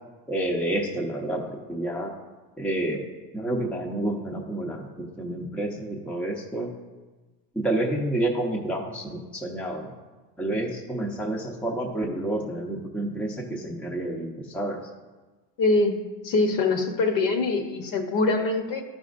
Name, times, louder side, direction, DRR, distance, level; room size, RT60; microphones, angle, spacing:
voice 1, 0.3-2.1 2.6-3.0 3.3-6.7 7.5-9.9 10.4-14.8, right 1 dB, 5° left, 0 dB, 0.7 m, -29 dB
voice 2, 15.6-16.0 16.2-18.8, left 3 dB, 45° left, 6 dB, 1.0 m, -23 dB
12.0 x 5.2 x 2.5 m, 1.3 s
supercardioid pair, 110°, 49 cm